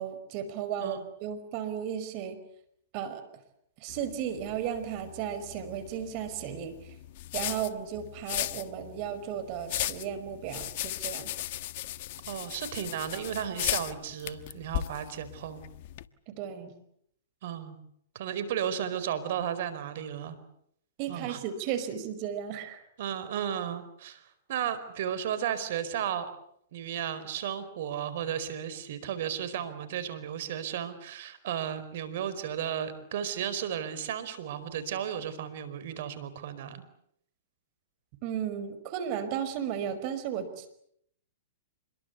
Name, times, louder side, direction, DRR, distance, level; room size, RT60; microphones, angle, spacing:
voice 1, 0.0-2.4 2.9-3.2 3.8-6.9 7.3-11.3 16.3-16.8 21.0-22.8 38.2-40.7, right 9 dB, 45° right, 11 dB, 5.3 m, -35 dB
sound 1, 3.9-16.0, left 15 dB, 55° left, 1.3 m, -37 dB
voice 2, 12.3-15.6 17.4-17.8 18.1-20.4 21.1-21.4 23.0-26.3 26.7-36.8, right 9 dB, 60° right, 13 dB, 4.7 m, -34 dB
26.5 x 22.5 x 8.3 m, 0.71 s
hypercardioid pair, 125°, 0 cm